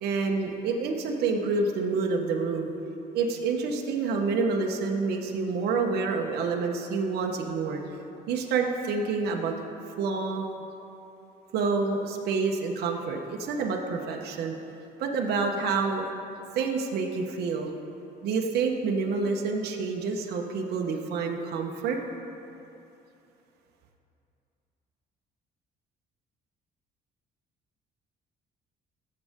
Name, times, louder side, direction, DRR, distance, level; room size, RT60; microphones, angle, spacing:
voice 1, 0.0-2.7 3.1-7.8 8.3-9.5 10.0-10.5 11.5-14.5 15.0-16.0 16.5-17.7 18.2-22.0, right 4 dB, 75° right, 1 dB, 1.2 m, -28 dB
17.0 x 7.9 x 3.7 m, 2.8 s
cardioid pair, 110°, 17 cm